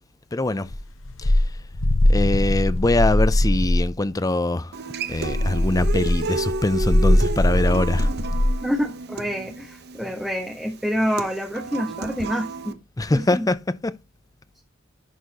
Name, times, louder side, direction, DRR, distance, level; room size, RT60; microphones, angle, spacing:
voice 1, 0.3-0.7 1.2-1.4 2.1-4.8 5.1-8.1 13.0-13.9, left 2 dB, 20° left, 0.5 m, -23 dB
sound 1, 0.7-3.9 5.1-8.6, left 1 dB, 70° left, 1.1 m, -21 dB
Human voice / Acoustic guitar, 4.7-12.7, right 3 dB, 55° right, 0.9 m, -32 dB
voice 2, 8.6-12.8 13.1-13.5, equal, ahead, 1.2 m, -27 dB
11.5 x 4.1 x 4.1 m
head